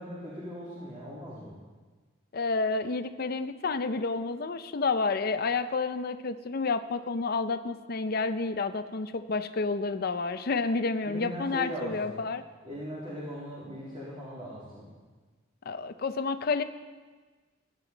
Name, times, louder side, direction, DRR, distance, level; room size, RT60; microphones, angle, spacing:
voice 1, 0.0-1.5 11.0-12.2 12.6-14.9, equal, 30° right, -8 dB, 2.5 m, -39 dB
voice 2, 2.3-12.4 15.7-16.6, left 4 dB, 50° left, 10 dB, 0.5 m, -30 dB
16.0 x 9.1 x 3.9 m, 1.4 s
head